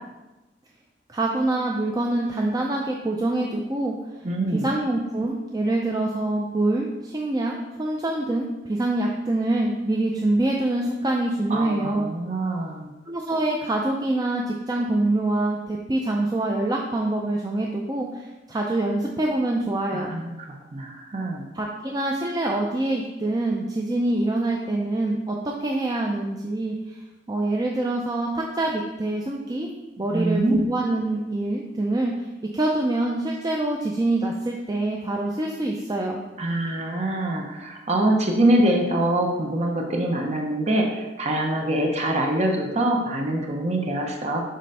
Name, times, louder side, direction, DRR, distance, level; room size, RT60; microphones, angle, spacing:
voice 1, 1.1-3.9 4.5-12.1 13.1-20.2 21.5-27.0 27.3-29.7 30.0-32.3 32.5-36.2, right 2 dB, 20° right, -1 dB, 0.5 m, -25 dB
voice 2, 4.2-4.7 11.5-12.9 19.9-21.4 30.1-30.6 36.4-44.4, right 1 dB, 35° right, 1 dB, 0.8 m, -24 dB
7.6 x 3.2 x 5.4 m, 1.1 s
head